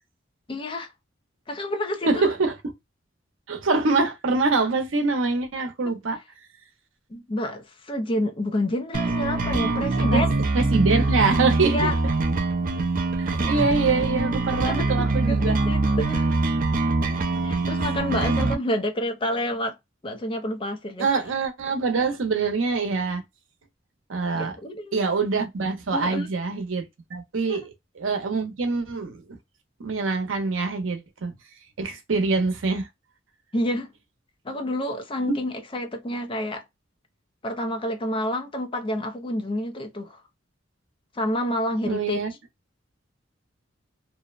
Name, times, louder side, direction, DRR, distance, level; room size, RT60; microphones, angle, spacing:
voice 1, 0.5-0.9 1.5-2.3 7.1-10.3 11.7-11.9 14.6-16.3 17.4-19.7 20.0-21.1 24.3-25.0 25.9-26.3 27.5-27.6 33.5-33.9 34.4-36.6 37.4-40.2 41.1-42.2, left 1 dB, 25° left, 0.5 m, -29 dB
voice 2, 2.0-2.7 3.5-6.2 10.1-10.2 10.5-11.9 13.2-15.6 18.1-18.6 21.0-23.2 24.1-24.6 24.9-27.6 28.0-29.4 29.8-31.4 31.8-32.9 35.3-35.4 41.8-42.3, right 4 dB, 90° right, 0.7 m, -24 dB
sound 1, 8.9-18.5, right 3 dB, 45° right, 0.4 m, -24 dB
2.6 x 2.0 x 2.3 m
head